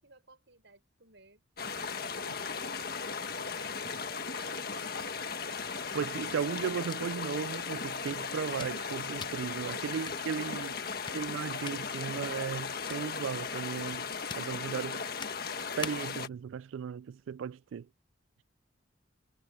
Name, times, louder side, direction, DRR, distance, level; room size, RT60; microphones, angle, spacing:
voice 1, 0.0-1.4 1.8-2.6 3.4-4.9 10.2-11.0, right 2 dB, 70° right, 5.3 m, -57 dB
sound 1, 1.6-16.3, left 5 dB, 50° left, 1.5 m, -37 dB
voice 2, 5.7-10.7 11.1-15.0 15.8-17.9, right 7 dB, 85° right, 0.3 m, -36 dB
sound 2, 6.7-16.3, left 5 dB, 25° left, 0.7 m, -49 dB
head